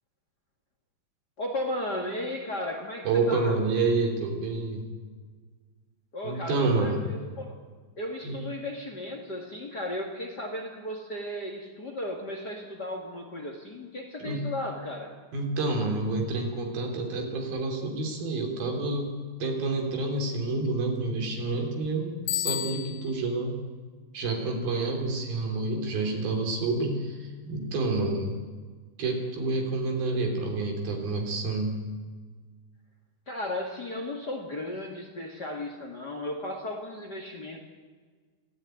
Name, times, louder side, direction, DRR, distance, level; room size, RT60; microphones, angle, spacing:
voice 1, 1.4-3.6 6.1-7.6 8.0-15.1 33.3-37.6, left 1 dB, 35° left, 3 dB, 2.2 m, -35 dB
voice 2, 3.1-4.9 6.2-7.0 8.2-8.4 14.2-14.4 15.3-19.1 19.4-23.6 24.1-28.3 29.0-31.8, right 3 dB, 80° right, 2 dB, 5.5 m, -28 dB
Bicycle bell, 22.3-23.2, left 12 dB, 70° left, 2.6 m, -31 dB
24.0 x 16.0 x 9.4 m, 1.5 s
omnidirectional pair, 4.2 m